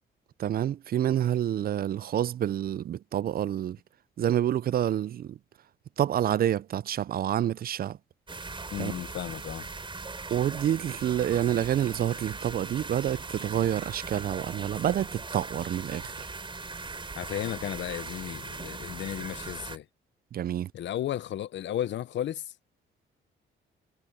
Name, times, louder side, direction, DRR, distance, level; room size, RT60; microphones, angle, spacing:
voice 1, 0.4-3.8 4.2-5.4 6.0-8.0 8.8-8.9 10.3-16.3 20.3-20.7, right 11 dB, 50° right, 0.4 m, -28 dB
sound 1, 8.3-19.8, right 3 dB, 25° right, 3.6 m, -39 dB
voice 2, 8.7-9.7 17.1-19.9 20.7-22.5, left 11 dB, 65° left, 0.8 m, -34 dB
cardioid pair, 90°, 20 cm